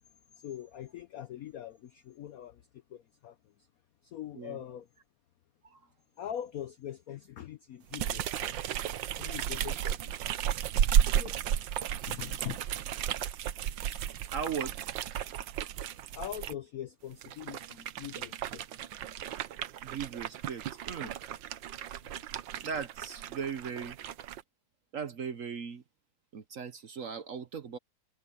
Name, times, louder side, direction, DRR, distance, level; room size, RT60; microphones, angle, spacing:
voice 1, 0.4-3.7 4.0-4.9 6.2-8.8 9.2-10.4 11.1-11.4 12.1-12.6 16.1-18.9 22.1-22.2, left 11 dB, 65° left, 0.9 m, -43 dB
sound 1, 7.9-16.5 17.1-24.4, right 10 dB, 70° right, 1.5 m, -33 dB
voice 2, 11.9-12.3 14.3-14.9 19.8-21.1 22.6-24.0 24.9-25.8 26.3-27.8, right 6 dB, 55° right, 1.0 m, -38 dB
omnidirectional pair, 2.2 m